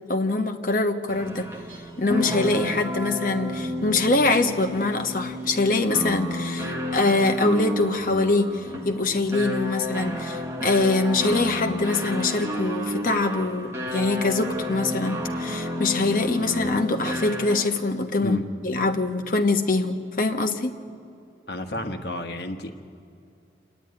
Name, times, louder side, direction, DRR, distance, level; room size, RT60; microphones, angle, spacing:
voice 1, 0.1-1.5 2.0-18.4 18.6-20.8, left 2 dB, 50° left, 5 dB, 1.2 m, -24 dB
sound 1, 1.1-17.8, left 1 dB, 15° right, 1.5 m, -31 dB
voice 2, 21.5-22.7, left 1 dB, 65° left, 6 dB, 1.3 m, -31 dB
27.0 x 10.0 x 9.6 m, 2.7 s
head